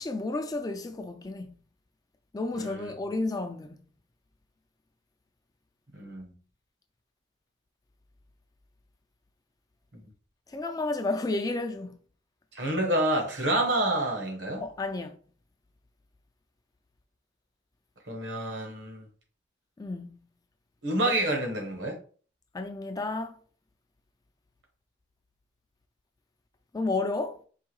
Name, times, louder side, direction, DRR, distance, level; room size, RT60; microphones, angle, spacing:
voice 1, 0.0-1.5 2.3-3.7 10.5-12.0 14.6-15.2 19.8-20.2 21.1-21.2 22.5-23.3 26.7-27.4, left 2 dB, 20° left, 0.3 m, -31 dB
voice 2, 2.6-2.9 5.9-6.3 9.9-10.0 12.5-14.6 18.1-19.0 20.8-22.0, right 1 dB, 75° right, 1.3 m, -28 dB
4.7 x 2.6 x 3.1 m
head